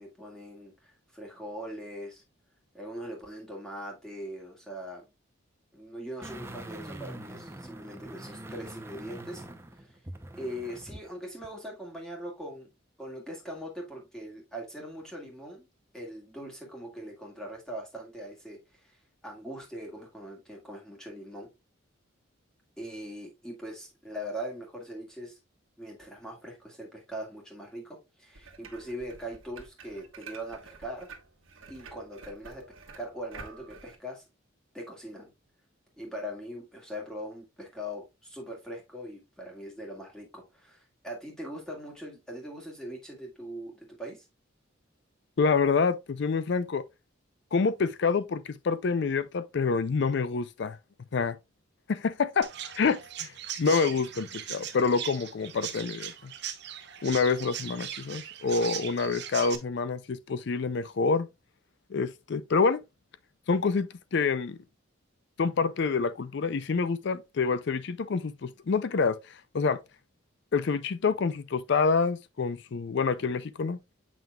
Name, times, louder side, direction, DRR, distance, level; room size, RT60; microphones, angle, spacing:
voice 1, 0.0-2.2 2.7-5.0 5.7-9.4 9.8-10.0 10.3-12.7 13.0-15.7 15.9-21.5 22.8-25.4 25.8-31.1 31.7-32.6 32.9-34.2 34.7-35.3 36.0-44.2, equal, 5° left, 1.8 m, -41 dB
sound 1, 6.2-11.1 11.4-11.5, right 1 dB, 10° right, 0.6 m, -43 dB
sound 2, 28.3-34.0, right 4 dB, 70° right, 1.3 m, -49 dB
voice 2, 45.4-46.8 47.5-50.8 51.1-51.4 51.9-52.5 52.8-53.3 53.6-56.3 57.0-61.3 61.9-62.8 63.5-64.6 65.4-69.8 70.5-73.8, left 4 dB, 55° left, 0.4 m, -27 dB
Chirp tweet, 52.4-59.6, right 10 dB, 55° right, 0.8 m, -39 dB
7.2 x 5.8 x 2.3 m
head